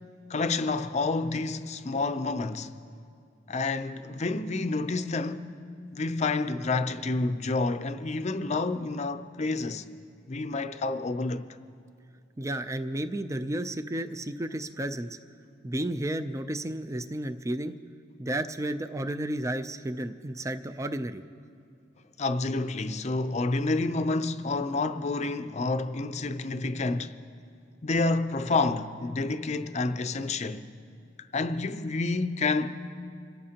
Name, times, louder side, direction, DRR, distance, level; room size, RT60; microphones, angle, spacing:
voice 1, 0.3-2.7 3.5-5.6 5.9-9.9 10.3-11.5 22.2-27.2 27.8-30.6 31.3-32.7, left 3 dB, 40° left, 0.5 m, -29 dB
voice 2, 12.4-15.2 15.6-17.7 18.2-21.2, right 1 dB, 15° right, 0.4 m, -32 dB
27.5 x 13.5 x 2.9 m
head